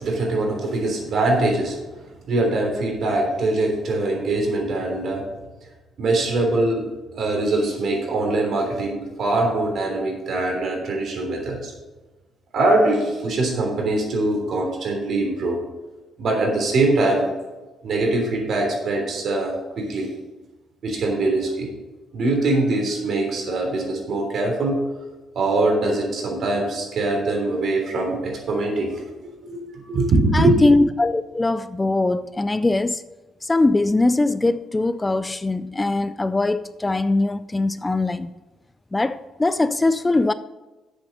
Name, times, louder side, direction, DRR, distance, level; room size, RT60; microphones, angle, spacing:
voice 1, 0.0-1.8 2.3-5.2 6.0-6.9 7.1-11.7 12.5-15.6 16.2-17.2 17.8-20.1 20.8-21.7 22.1-24.8 25.4-29.0 29.4-30.6, right 2 dB, 60° right, 3.3 m, -22 dB
voice 2, 30.3-33.0 33.4-38.3 38.9-40.3, left 2 dB, 20° left, 0.4 m, -21 dB
7.6 x 7.3 x 6.5 m
cardioid pair, 90°, 0 cm